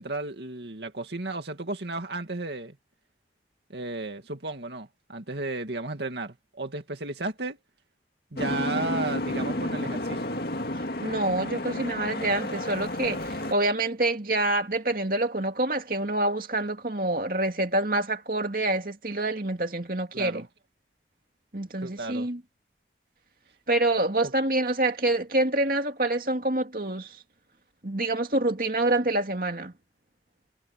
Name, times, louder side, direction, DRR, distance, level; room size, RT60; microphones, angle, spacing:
voice 1, 0.0-2.8 3.7-7.6 8.3-10.2 20.1-20.5 21.8-22.3, right 2 dB, 75° right, 2.2 m, -34 dB
Boat Water vehicle, 8.4-13.5, left 1 dB, 60° left, 2.3 m, -31 dB
voice 2, 11.0-20.4 21.5-22.4 23.7-27.2 27.8-29.7, right 2 dB, 50° right, 2.6 m, -26 dB
head